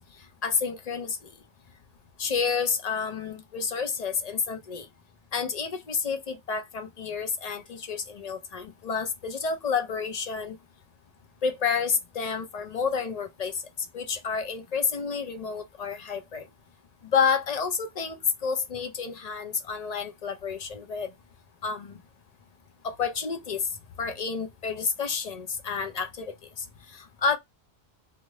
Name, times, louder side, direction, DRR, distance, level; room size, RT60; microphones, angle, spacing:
voice 1, 0.4-1.2 2.2-4.9 5.3-10.6 11.4-13.6 13.9-16.4 17.1-21.1 21.6-22.0 22.8-23.7 24.0-26.3 26.9-27.4, left 5 dB, 45° left, 0.6 m, -29 dB
2.5 x 2.4 x 3.1 m
omnidirectional pair, 1.1 m